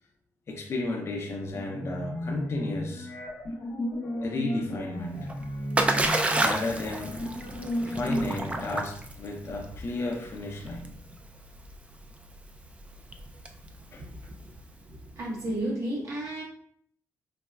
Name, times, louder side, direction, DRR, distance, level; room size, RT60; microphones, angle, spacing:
voice 1, 0.5-3.1 4.2-5.3 6.4-7.1 7.8-10.9 13.9-14.0, left 2 dB, 50° left, 0 dB, 0.5 m, -33 dB
sound 1, 1.5-8.7, left 1 dB, 80° left, 0.8 m, -34 dB
Splash splatter, 5.1-14.9, right 2 dB, 20° right, 0.4 m, -31 dB
voice 2, 14.0-14.3 14.9-16.4, right 1 dB, 65° right, -3 dB, 1.1 m, -33 dB
4.0 x 2.2 x 2.2 m, 0.63 s
cardioid pair, 75°, 6 cm